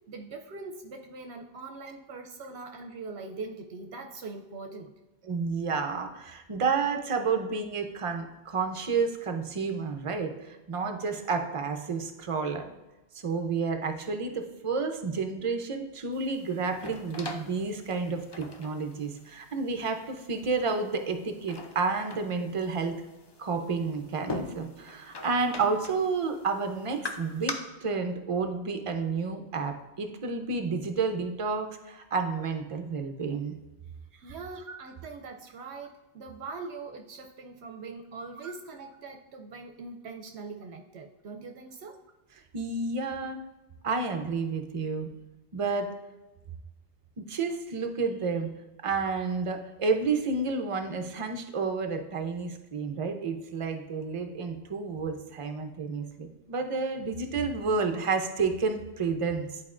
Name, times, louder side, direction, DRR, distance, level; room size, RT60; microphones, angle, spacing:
voice 1, 0.1-4.9 34.2-42.0, right 4 dB, 75° right, 3 dB, 0.8 m, -42 dB
voice 2, 5.2-12.7 13.1-22.9 23.4-27.5 27.8-33.5 34.3-34.4 34.7-34.8 42.5-43.4 43.8-45.1 45.5-45.9 47.2-48.5 48.8-59.6, right 4 dB, 40° right, 5 dB, 0.5 m, -30 dB
sound 1, 16.1-27.5, left 2 dB, 35° left, 0.4 m, -43 dB
10.5 x 4.3 x 2.4 m, 1.1 s
omnidirectional pair, 1.2 m